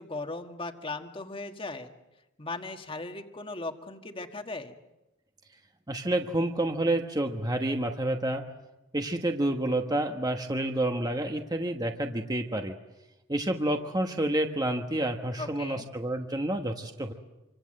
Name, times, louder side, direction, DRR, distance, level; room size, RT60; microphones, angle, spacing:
voice 1, 0.0-1.9 2.4-4.8 15.4-15.8, left 3 dB, 30° left, 6 dB, 1.7 m, -38 dB
voice 2, 5.9-8.4 8.9-12.7 13.3-17.1, right 1 dB, 20° right, 4 dB, 1.3 m, -29 dB
27.0 x 25.0 x 7.7 m, 1.0 s
head